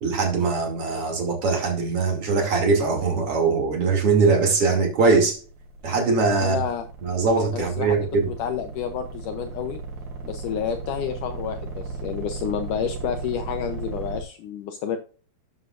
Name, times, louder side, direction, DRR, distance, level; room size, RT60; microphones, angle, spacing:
voice 1, 0.0-5.4 5.8-6.6 7.0-8.3, right 4 dB, 40° right, 2 dB, 3.1 m, -21 dB
sound 1, 5.2-14.2, right 3 dB, 60° right, 4.0 m, -36 dB
voice 2, 6.4-6.9 7.5-8.0 8.3-9.8 10.2-15.0, left 8 dB, 85° left, 6 dB, 1.8 m, -30 dB
12.5 x 8.2 x 2.5 m, 0.38 s
omnidirectional pair, 4.9 m